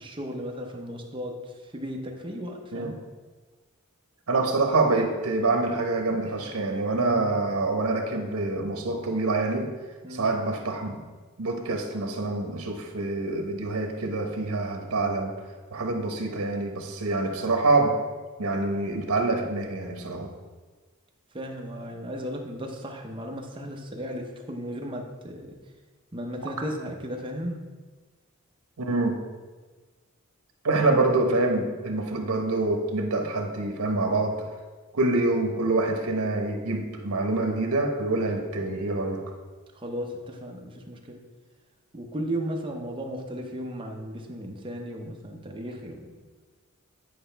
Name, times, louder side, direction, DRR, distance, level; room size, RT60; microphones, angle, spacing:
voice 1, 0.0-3.0 6.2-6.4 6.9-7.2 10.0-10.3 21.3-25.6 26.1-27.6 39.8-41.2 41.9-46.2, equal, 25° right, 2 dB, 0.8 m, -35 dB
voice 2, 4.3-9.7 10.1-11.0 11.4-15.3 15.7-17.9 18.4-20.3 26.4-26.5 28.8-29.2 30.6-34.5 34.9-39.2, right 2 dB, 75° right, 3 dB, 1.1 m, -26 dB
9.3 x 4.9 x 3.4 m, 1.4 s
head